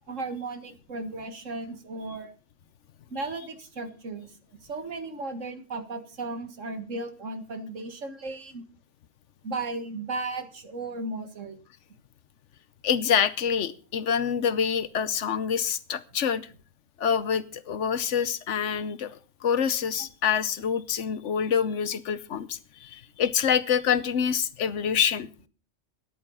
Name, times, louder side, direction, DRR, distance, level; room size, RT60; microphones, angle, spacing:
voice 1, 0.1-2.3 3.1-4.3 4.6-8.6 9.4-11.6, right 3 dB, 75° right, 9 dB, 2.0 m, -35 dB
voice 2, 12.8-16.4 17.0-25.3, left 7 dB, 70° left, 15 dB, 1.1 m, -26 dB
13.5 x 10.0 x 5.5 m, 0.38 s
omnidirectional pair, 1.3 m